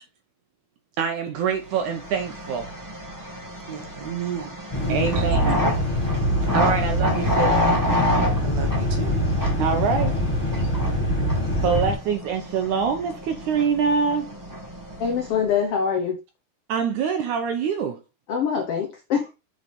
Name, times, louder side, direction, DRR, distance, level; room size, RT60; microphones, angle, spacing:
voice 1, 1.0-2.7 4.9-5.6 6.5-7.6 9.6-10.2 11.6-14.3 16.7-18.0, right 6 dB, 75° right, 1.9 m, -24 dB
sound 1, 1.7-15.5, left 1 dB, 10° right, 1.0 m, -29 dB
voice 2, 3.7-5.2 8.4-9.3, right 7 dB, 60° right, 2.0 m, -33 dB
sound 2, 4.7-11.9, equal, 10° left, 2.3 m, -24 dB
voice 3, 15.0-16.2 18.3-19.3, left 7 dB, 85° left, 1.3 m, -24 dB
8.0 x 3.9 x 5.2 m
omnidirectional pair, 4.3 m